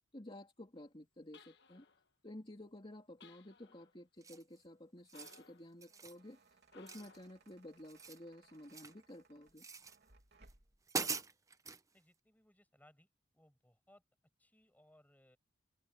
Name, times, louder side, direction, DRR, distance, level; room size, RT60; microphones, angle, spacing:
voice 1, 0.1-1.8 2.2-9.7, left 1 dB, 25° left, 2.8 m, -53 dB
sound 1, 1.3-2.1 3.2-4.0 5.1-5.7 6.7-7.4, left 4 dB, 60° left, 1.5 m, -62 dB
sound 2, 4.2-4.6 5.0-5.4 5.8-6.2 6.9-7.5 7.8-9.0 9.6-10.0 10.5-10.6 10.9-11.8, right 4 dB, 15° right, 0.8 m, -43 dB
sound 3, 5.7-10.9, right 3 dB, 60° right, 3.2 m, -67 dB
voice 2, 11.9-13.1 13.3-14.0 14.4-15.4, left 1 dB, 10° left, 7.9 m, -67 dB
open air
head